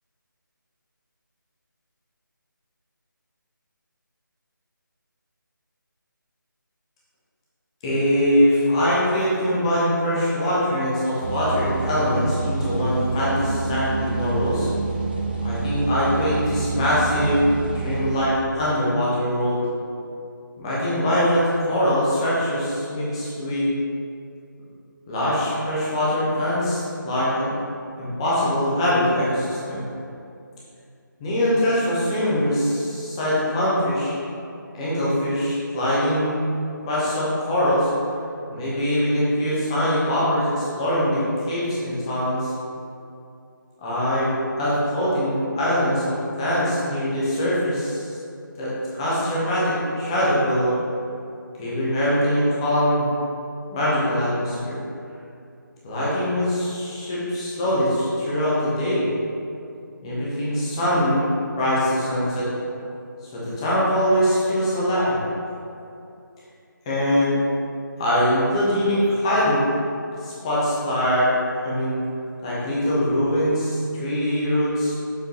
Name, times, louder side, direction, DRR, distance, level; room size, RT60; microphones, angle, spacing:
voice 1, 7.8-14.7 15.4-17.4 17.7-19.6 20.6-23.8 25.1-27.5 28.0-29.8 31.2-34.1 34.7-36.4 36.9-37.9 38.5-41.2 41.5-42.5 43.8-44.3 44.6-48.2 48.6-50.8 51.6-53.2 53.7-54.8 55.8-59.0 60.0-61.2 61.5-62.5 63.3-65.2 66.8-67.3 68.0-69.6 70.2-71.3 71.6-72.0 72.4-74.9, equal, 15° left, -9 dB, 1.1 m, -22 dB
sound 1, 11.2-18.2, right 4 dB, 30° right, 0.5 m, -28 dB
7.1 x 5.1 x 3.2 m, 2.6 s
figure-of-eight pair, 155°, 11 cm